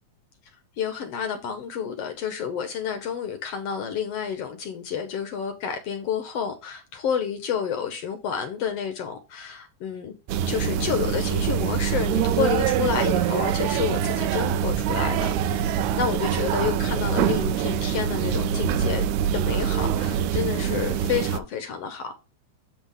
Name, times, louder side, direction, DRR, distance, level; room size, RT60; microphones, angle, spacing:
voice 1, 0.8-10.2 10.5-19.1 19.3-22.1, left 7 dB, 65° left, 1.6 m, -30 dB
sound 1, 10.3-21.4, right 9 dB, 80° right, 1.8 m, -24 dB
8.1 x 3.4 x 5.5 m
omnidirectional pair, 3.6 m